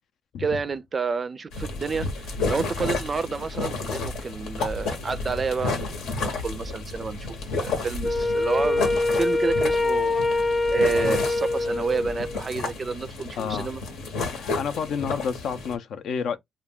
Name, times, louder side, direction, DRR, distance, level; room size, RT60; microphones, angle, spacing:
voice 1, 0.4-7.2 7.5-13.8, right 5 dB, 35° right, 0.4 m, -30 dB
sound 1, 1.5-15.7, left 3 dB, 85° left, 0.9 m, -31 dB
Wind instrument woodwind instrument, 8.0-12.4, left 2 dB, 25° left, 0.8 m, -24 dB
voice 2, 13.3-13.7 14.3-16.4, left 6 dB, 70° left, 0.5 m, -30 dB
2.3 x 2.2 x 3.5 m
cardioid pair, 90°, 0 cm